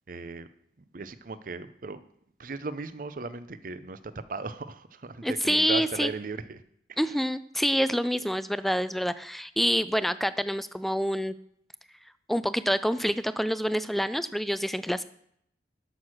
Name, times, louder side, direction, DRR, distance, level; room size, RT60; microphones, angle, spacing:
voice 1, 0.1-0.5 0.9-2.0 2.4-6.6 6.9-7.1, right 3 dB, 50° right, 14 dB, 0.6 m, -37 dB
voice 2, 5.2-6.1 7.0-11.3 12.3-15.0, equal, ahead, 14 dB, 0.3 m, -27 dB
12.0 x 6.4 x 6.1 m, 0.71 s
head